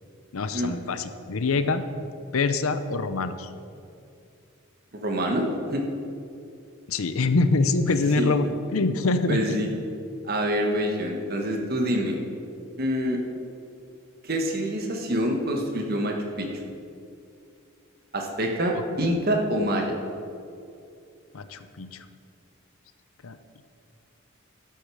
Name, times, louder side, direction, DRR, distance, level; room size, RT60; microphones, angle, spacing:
voice 1, 0.3-1.8 2.3-3.5 6.9-9.7 21.3-22.0 23.2-23.6, left 3 dB, 80° left, 11 dB, 0.7 m, -25 dB
voice 2, 4.9-5.8 7.9-8.4 9.3-9.7 10.2-12.1 12.8-13.2 14.2-16.5 18.1-20.0, equal, 45° right, 2 dB, 1.4 m, -26 dB
12.5 x 8.4 x 4.9 m, 2.5 s
head